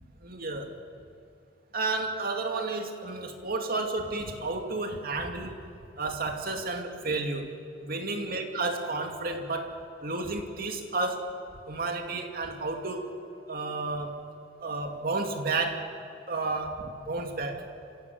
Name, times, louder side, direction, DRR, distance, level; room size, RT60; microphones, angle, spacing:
voice 1, 0.2-0.7 1.7-5.6 6.0-11.3 11.7-13.1 13.5-14.2 14.6-15.9 16.3-17.6, right 3 dB, 50° right, 3 dB, 2.4 m, -32 dB
26.5 x 16.5 x 7.7 m, 2.7 s
head